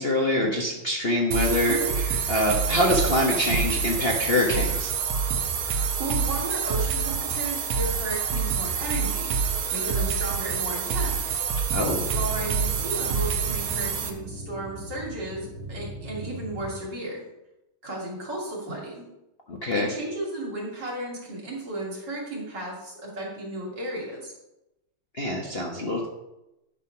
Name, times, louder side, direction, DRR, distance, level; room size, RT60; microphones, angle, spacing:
voice 1, 0.0-1.8 2.3-4.9 11.7-12.1 19.5-19.9 25.2-26.1, left 1 dB, 35° left, -2 dB, 1.2 m, -24 dB
sound 1, 1.3-14.1, right 6 dB, 80° right, 1.9 m, -27 dB
voice 2, 6.0-9.3 9.7-11.4 12.1-17.2 17.8-19.1 19.7-24.3, right 1 dB, 55° right, -3 dB, 3.4 m, -34 dB
sound 2, 11.7-16.7, right 1 dB, 30° right, 4.6 m, -38 dB
10.5 x 5.7 x 5.8 m, 0.91 s
omnidirectional pair, 2.3 m